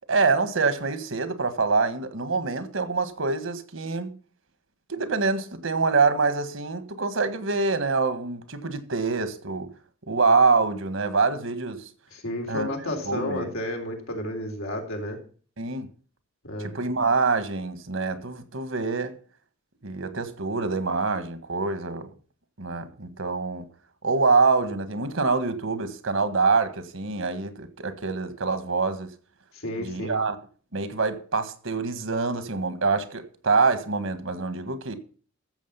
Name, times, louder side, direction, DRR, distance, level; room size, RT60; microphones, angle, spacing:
voice 1, 0.1-4.2 4.9-9.7 10.1-11.9 12.5-12.7 13.0-13.5 15.6-15.9 16.6-19.1 19.8-22.1 22.6-23.7 24.0-29.1 29.8-30.4 30.7-35.0, right 4 dB, 70° right, 1.6 m, -25 dB
voice 2, 12.1-15.2 16.4-16.7 29.5-30.2, left 1 dB, 90° left, 3.6 m, -32 dB
14.0 x 7.5 x 5.7 m
head